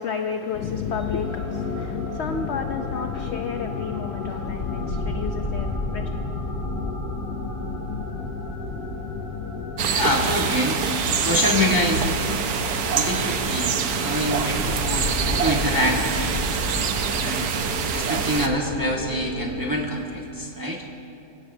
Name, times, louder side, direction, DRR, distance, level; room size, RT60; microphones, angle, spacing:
voice 1, 0.0-6.1, left 6 dB, 55° left, 5 dB, 0.8 m, -32 dB
sound 1, 0.5-20.3, left 7 dB, 85° left, 1.3 m, -35 dB
sound 2, 1.2-19.9, equal, 35° left, 2.0 m, -34 dB
sound 3, 9.8-18.5, right 6 dB, 85° right, 1.4 m, -25 dB
voice 2, 9.9-10.8 11.2-12.2 12.9-13.7 14.0-16.1 17.2-17.5 17.9-20.8, left 1 dB, 15° right, -2 dB, 1.3 m, -25 dB
25.0 x 17.0 x 2.7 m, 2.7 s
omnidirectional pair, 1.7 m